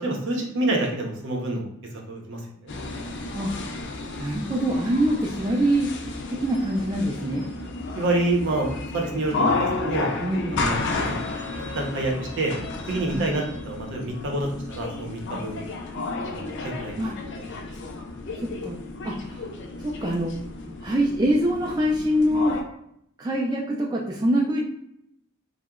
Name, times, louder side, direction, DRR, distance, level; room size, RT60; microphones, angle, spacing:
voice 1, 0.0-1.7 1.9-2.7 8.0-10.1 10.5-11.2 11.7-12.5 12.9-15.7 16.2-16.9, right 2 dB, 60° right, 1 dB, 0.7 m, -27 dB
sound 1, 2.7-22.6, left 3 dB, 55° left, 0.4 m, -32 dB
voice 2, 4.2-5.9 6.3-7.5 10.2-10.6 13.1-13.3 15.3-15.4 17.0-17.1 18.4-19.4 19.8-20.3 20.8-22.6 23.2-24.6, equal, 20° right, -3 dB, 0.3 m, -24 dB
2.8 x 2.1 x 3.5 m, 0.73 s
head